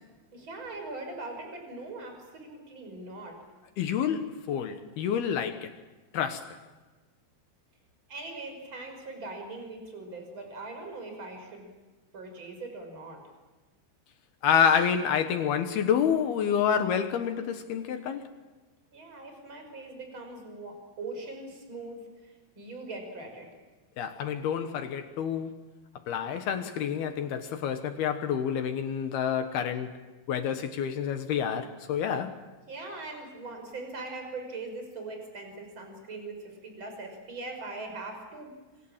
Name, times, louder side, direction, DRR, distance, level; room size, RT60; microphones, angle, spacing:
voice 1, 0.3-3.4 8.1-11.7 12.1-13.2 18.9-23.5 32.7-38.5, right 2 dB, 25° right, 6.3 m, -41 dB
voice 2, 3.8-5.7 6.1-6.6 14.4-18.2 24.0-25.5 26.1-29.9 30.3-32.4, left 8 dB, 70° left, 2.7 m, -28 dB
26.0 x 25.0 x 7.4 m
omnidirectional pair, 5.7 m